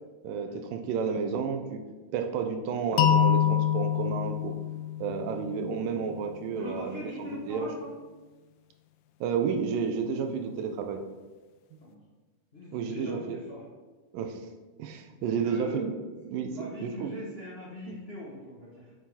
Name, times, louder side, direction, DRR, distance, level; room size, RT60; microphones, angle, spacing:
voice 1, 0.2-1.8 2.1-4.6 5.0-7.7 9.2-11.0 11.7-11.8 12.7-13.4 14.1-14.4 14.8-15.9 16.3-16.5 16.8-17.1 17.9-18.0, right 6 dB, 85° right, 6 dB, 2.4 m, -31 dB
sound 1, 3.0-5.9, left 10 dB, 85° left, 1.7 m, -26 dB
voice 2, 6.6-7.9 10.4-10.5 11.8-12.0 12.5-13.6 15.1-15.9 16.5-18.9, left 1 dB, 55° left, -6 dB, 0.6 m, -41 dB
7.2 x 6.2 x 4.2 m, 1.3 s
omnidirectional pair, 3.8 m